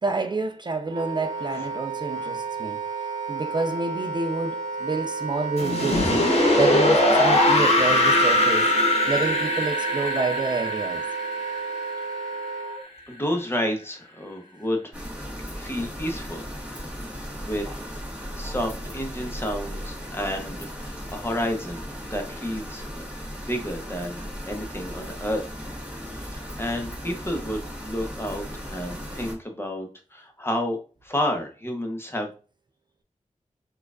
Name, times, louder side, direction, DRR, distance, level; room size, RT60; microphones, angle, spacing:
voice 1, 0.0-2.8 3.3-8.7 9.1-11.0, right 3 dB, 35° right, 0.4 m, -28 dB
Wind instrument woodwind instrument, 0.9-12.8, right 5 dB, 85° right, 0.6 m, -32 dB
sound 1, 5.6-12.5, left 1 dB, 55° left, 1.0 m, -21 dB
voice 2, 13.1-14.9 15.4-16.5 17.4-17.9 18.3-23.0 23.4-25.4 26.2-32.3, equal, 20° left, 0.8 m, -31 dB
sound 2, 14.9-29.3, equal, 10° right, 1.6 m, -36 dB
4.4 x 2.3 x 2.4 m
wide cardioid pair, 50°, 13 cm